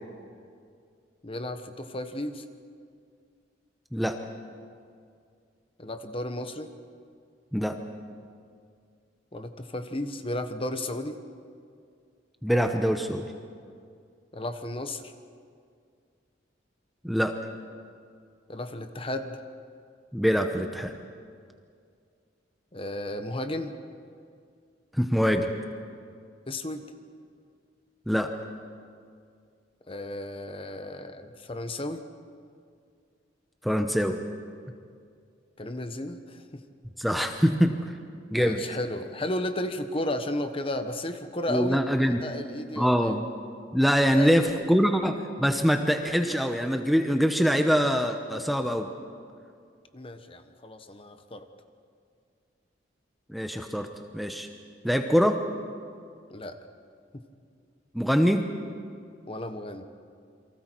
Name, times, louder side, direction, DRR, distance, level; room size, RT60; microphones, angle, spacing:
voice 1, 1.2-2.4 5.8-6.7 9.3-11.2 14.3-15.1 18.5-19.4 22.7-23.7 26.5-26.8 29.9-32.0 35.6-36.6 38.3-43.1 44.2-44.7 49.9-51.5 56.3-56.6 57.1-57.2 59.3-59.8, left 1 dB, 30° left, 8 dB, 1.1 m, -34 dB
voice 2, 12.4-13.3 17.0-17.4 20.1-20.9 24.9-25.5 28.1-28.3 33.6-34.2 37.0-37.9 38.3-38.6 41.5-42.2 42.8-43.2 43.7-48.9 53.3-53.9 54.1-54.5 54.8-55.4 57.9-58.5, equal, ahead, 5 dB, 0.8 m, -24 dB
29.0 x 23.5 x 4.6 m, 2.3 s
head